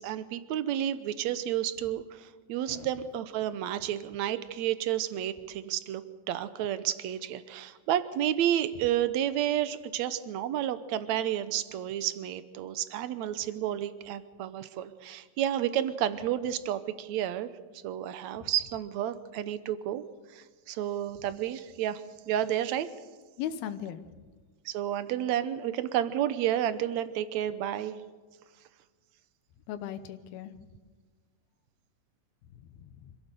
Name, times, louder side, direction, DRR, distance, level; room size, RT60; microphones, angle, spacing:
voice 1, 0.0-17.5 17.8-22.9 24.6-28.0, right 11 dB, 75° right, 12 dB, 1.7 m, -31 dB
voice 2, 23.4-24.0 29.7-30.5 32.7-33.1, left 10 dB, 85° left, 10 dB, 3.0 m, -37 dB
26.0 x 16.5 x 6.8 m, 1.4 s
omnidirectional pair, 4.3 m